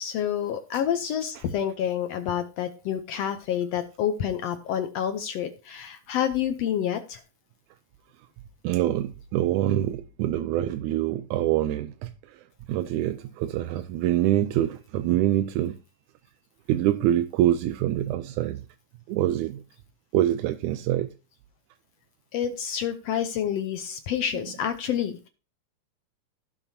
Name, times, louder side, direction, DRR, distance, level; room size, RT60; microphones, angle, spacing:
voice 1, 0.0-7.2 22.3-25.3, left 9 dB, 75° left, 1.5 m, -28 dB
voice 2, 8.6-11.9 12.7-15.7 16.7-18.6 19.1-19.6 20.1-21.1, right 13 dB, 80° right, 1.9 m, -25 dB
16.0 x 6.8 x 2.8 m
omnidirectional pair, 3.7 m